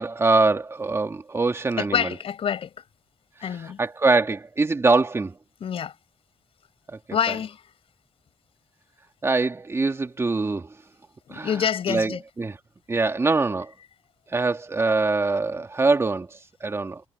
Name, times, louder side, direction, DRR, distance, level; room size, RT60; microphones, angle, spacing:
voice 1, 0.0-2.1 3.8-5.3 9.2-10.7 11.3-11.5 11.9-12.1 12.4-12.5 12.9-13.7 14.3-16.3 16.6-17.0, right 3 dB, 25° right, 2.1 m, -23 dB
voice 2, 1.8-2.7 3.4-3.8 5.6-5.9 7.1-7.6 11.3-12.2, left 8 dB, 65° left, 5.0 m, -27 dB
wide cardioid pair, 125°, 10 cm